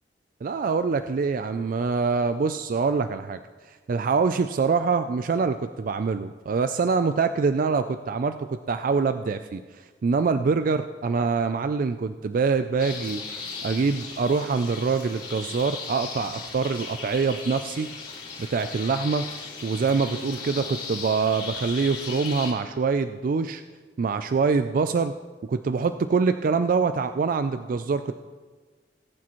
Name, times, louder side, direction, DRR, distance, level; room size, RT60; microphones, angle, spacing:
voice 1, 0.4-3.4 3.7-13.2 13.6-17.9 18.4-19.3 19.6-23.6 24.0-25.1 25.4-28.1, right 4 dB, 50° right, 10 dB, 0.3 m, -25 dB
sound 1, 12.8-22.5, left 4 dB, 65° left, 3.9 m, -37 dB
18.5 x 8.6 x 3.1 m, 1.4 s
head